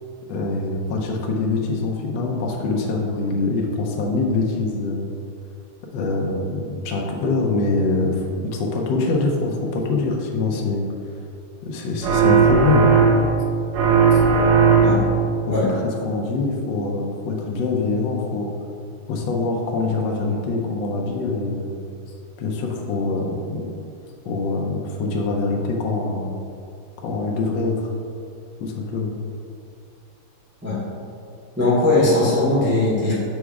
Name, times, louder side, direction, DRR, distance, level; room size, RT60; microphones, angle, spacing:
voice 1, 0.3-5.1 5.9-10.9 11.6-12.9 14.1-14.2 15.5-18.5 19.1-21.7 22.4-23.7 24.2-26.4 27.0-27.9 28.6-29.1, left 3 dB, 70° left, 0 dB, 1.2 m, -24 dB
sound 1, 12.0-13.4 13.7-15.3, right 5 dB, 75° right, 1.1 m, -16 dB
voice 2, 31.6-33.1, left 2 dB, 10° right, -7 dB, 0.8 m, -19 dB
6.2 x 3.5 x 4.7 m, 2.5 s
omnidirectional pair, 2.4 m